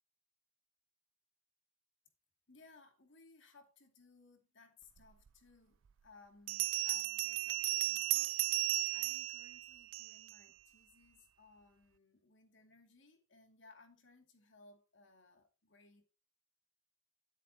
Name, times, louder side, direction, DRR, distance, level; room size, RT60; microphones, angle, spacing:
voice 1, 2.5-8.4 8.9-16.0, left 3 dB, 65° left, 2.4 m, -63 dB
Bell, 5.3-5.4 6.5-10.4, right 18 dB, 75° right, 0.4 m, -35 dB
11.5 x 9.7 x 2.9 m
head